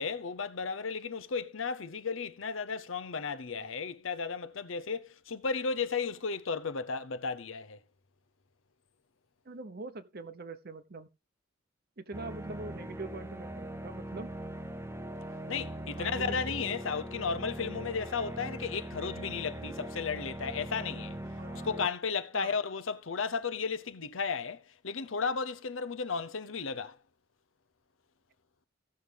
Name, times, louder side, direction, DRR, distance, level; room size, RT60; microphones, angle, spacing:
voice 1, 0.0-7.8 15.5-21.2 21.5-27.0, left 5 dB, 80° left, 0.8 m, -34 dB
voice 2, 9.4-11.1 12.0-14.3 16.0-16.5 21.4-21.7 22.3-22.6, right 2 dB, 50° right, 0.9 m, -43 dB
sound 1, 12.1-21.9, right 1 dB, 15° right, 0.7 m, -41 dB
16.0 x 6.4 x 3.5 m
head